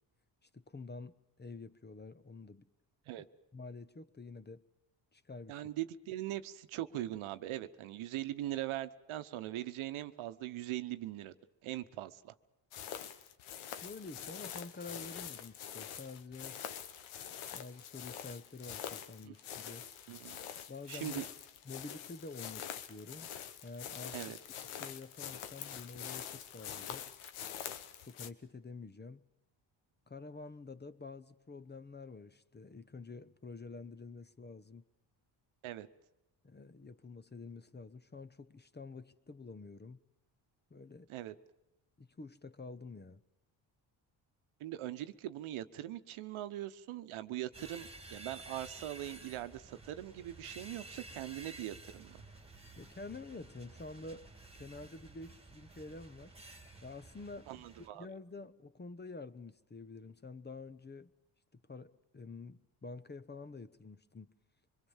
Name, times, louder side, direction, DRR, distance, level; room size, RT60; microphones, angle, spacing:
voice 1, 0.4-2.7 3.5-4.6 5.1-5.6 13.8-16.6 17.5-19.9 20.7-21.2 21.6-23.3 23.6-24.2 24.8-27.1 28.1-29.2 30.1-34.8 36.4-40.0 40.7-41.1 42.0-43.2 52.8-56.3 56.8-57.7 57.9-61.1 61.5-64.3, left 3 dB, 20° left, 1.0 m, -48 dB
voice 2, 5.5-11.3 11.6-12.3 19.2-19.3 20.1-20.4 20.9-21.2 24.1-24.4 35.6-35.9 41.1-41.3 44.6-52.2 57.5-58.1, right 14 dB, 80° right, 1.1 m, -41 dB
sound 1, 12.7-28.3, left 9 dB, 80° left, 1.3 m, -45 dB
sound 2, 47.5-57.9, right 2 dB, 10° right, 2.3 m, -53 dB
24.5 x 22.5 x 7.3 m
supercardioid pair, 70°, 48 cm